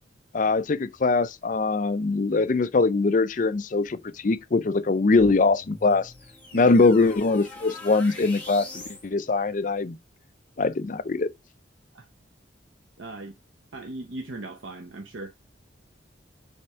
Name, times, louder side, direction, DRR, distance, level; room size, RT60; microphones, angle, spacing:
voice 1, 0.3-6.1 6.5-8.7 9.0-9.9 10.6-11.3, left 3 dB, 45° left, 0.4 m, -22 dB
sound 1, 5.1-9.1, left 2 dB, 10° left, 2.1 m, -43 dB
voice 2, 13.0-13.4 13.7-15.3, right 2 dB, 90° right, 0.9 m, -38 dB
6.4 x 3.4 x 4.3 m
head